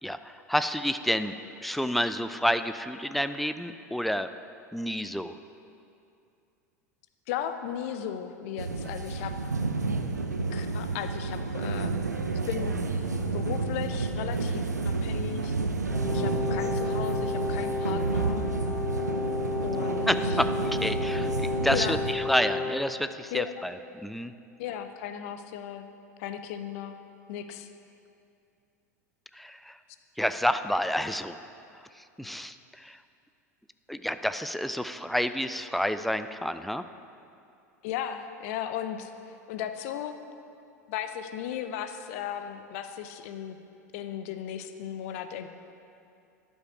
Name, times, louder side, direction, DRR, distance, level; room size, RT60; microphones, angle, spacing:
voice 1, 0.0-1.4 1.6-4.3 4.7-5.4 20.1-24.3 29.3-29.8 30.2-31.4 32.0-33.0 33.9-36.8, equal, ahead, 10 dB, 0.3 m, -29 dB
voice 2, 7.3-9.3 10.5-11.9 12.5-12.7 13.3-15.5 16.1-18.5 19.6-20.1 21.7-22.0 23.3-23.6 24.6-25.8 26.2-26.9 27.3-27.7 37.8-39.1 39.5-40.1 40.9-43.6 43.9-45.5, left 9 dB, 55° left, 8 dB, 0.6 m, -36 dB
sound 1, 8.6-22.1, right 3 dB, 85° right, 0.5 m, -30 dB
Brass instrument, 15.9-22.8, left 4 dB, 25° left, 1.6 m, -32 dB
11.5 x 5.4 x 4.8 m, 2.6 s
figure-of-eight pair, 85°, 9 cm